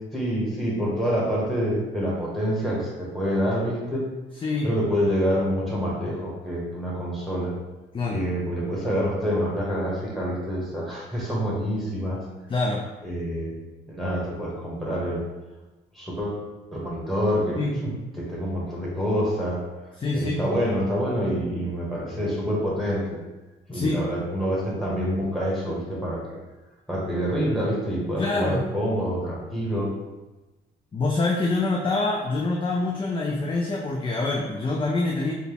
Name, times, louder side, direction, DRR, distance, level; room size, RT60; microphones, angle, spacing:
voice 1, 0.1-4.1 4.6-7.5 8.1-12.3 13.0-13.5 13.9-15.2 15.9-16.4 16.7-19.6 20.1-23.1 23.7-26.4 26.9-29.9, equal, ahead, -5 dB, 1.4 m, -27 dB
voice 2, 12.5-12.8 17.6-17.8 20.0-20.5 23.7-24.0 28.2-28.7 30.9-35.3, left 3 dB, 25° left, -2 dB, 0.4 m, -25 dB
4.3 x 2.3 x 3.4 m, 1.1 s
cardioid pair, 90°, 20 cm